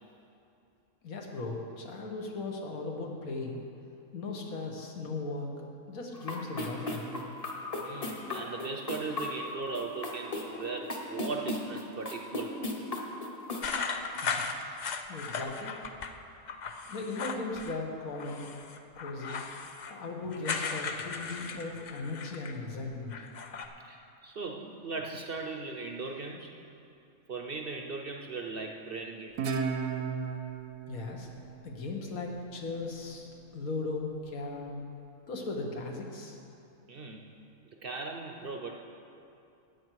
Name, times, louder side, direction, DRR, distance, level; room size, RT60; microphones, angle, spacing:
voice 1, 1.0-3.6 4.1-5.5 5.9-7.2 14.1-15.7 16.9-18.5 19.0-19.4 19.9-23.1 30.9-31.3 31.6-34.7 35.3-36.4, left 3 dB, 80° left, 1 dB, 1.7 m, -38 dB
sound 1, 6.1-13.7, left 2 dB, 30° left, 1.0 m, -38 dB
voice 2, 7.7-12.7 19.7-19.8 23.8-26.5 27.3-29.6 36.9-37.3 37.8-38.8, right 4 dB, 50° right, 2 dB, 0.8 m, -38 dB
sound 2, 13.6-16.1 16.5-17.8 18.1-22.6 22.9-23.7, left 5 dB, 55° left, 0.4 m, -37 dB
Guitar, 29.4-32.6, right 5 dB, 75° right, 1.2 m, -35 dB
13.5 x 9.0 x 4.7 m, 2.7 s
omnidirectional pair, 1.5 m